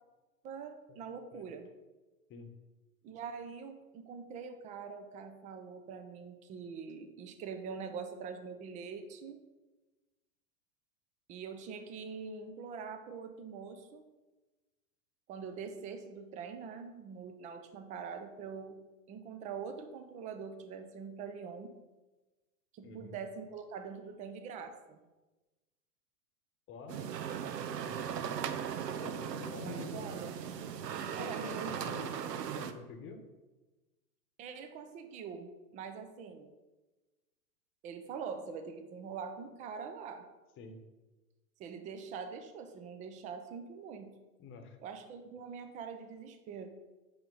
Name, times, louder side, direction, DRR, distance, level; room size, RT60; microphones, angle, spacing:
voice 1, 0.4-1.7 3.0-9.4 11.3-14.0 15.3-18.8 19.1-21.8 22.7-25.0 29.6-30.3 31.2-32.3 34.4-36.5 37.8-40.3 41.6-44.2 44.8-46.7, right 6 dB, 15° right, 7 dB, 0.4 m, -44 dB
voice 2, 22.8-23.1 26.7-27.0 27.8-28.0 29.0-30.2 31.1-32.1 32.5-33.2 40.6-40.8 44.4-44.8, left 4 dB, 25° left, 6 dB, 1.0 m, -47 dB
sound 1, 26.9-32.7, right 8 dB, 85° right, 0.7 m, -38 dB
5.8 x 5.0 x 5.3 m, 1.2 s
hypercardioid pair, 110°, 48 cm